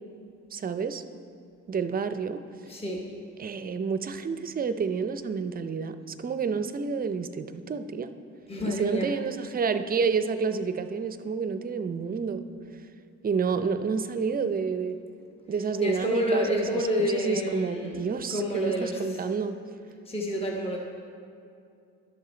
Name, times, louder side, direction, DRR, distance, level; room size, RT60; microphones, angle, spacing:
voice 1, 0.5-1.0 1.7-2.4 3.4-8.1 8.7-12.4 13.2-15.0 15.5-19.6, right 5 dB, 30° right, 10 dB, 0.5 m, -29 dB
voice 2, 2.7-3.0 8.5-9.1 15.8-18.0 18.3-19.2 20.1-20.8, equal, 20° left, -1 dB, 1.0 m, -29 dB
11.5 x 6.6 x 4.3 m, 2.5 s
cardioid pair, 90°, 30 cm